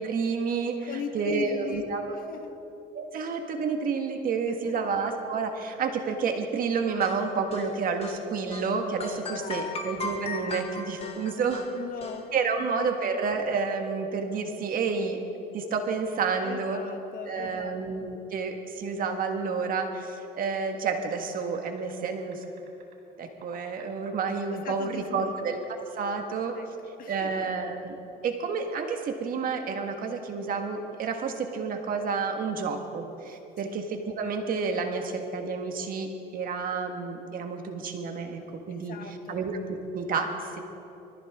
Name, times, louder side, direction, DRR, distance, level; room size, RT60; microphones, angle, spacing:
voice 1, 0.0-2.2 2.9-11.7 12.3-15.2 15.5-16.8 17.3-22.4 23.2-25.6 26.0-26.6 27.1-28.0 28.2-38.4 38.7-40.6, right 5 dB, 55° right, 4 dB, 1.6 m, -30 dB
voice 2, 0.8-1.9 2.3-2.5 4.5-4.6 9.2-9.7 11.7-12.7 16.4-17.8 24.6-25.3 26.5-26.7 27.0-27.3 33.3-33.8 38.7-39.4, left 7 dB, 55° left, 6 dB, 1.5 m, -39 dB
sound 1, 7.0-8.2 8.5-8.7 9.0-12.2, left 3 dB, 35° left, 1.7 m, -37 dB
sound 2, 21.1-23.0 23.4-25.7 26.0-26.3, right 7 dB, 75° right, 4.4 m, -54 dB
24.0 x 14.5 x 3.6 m, 3.0 s
cardioid pair, 110°, 17 cm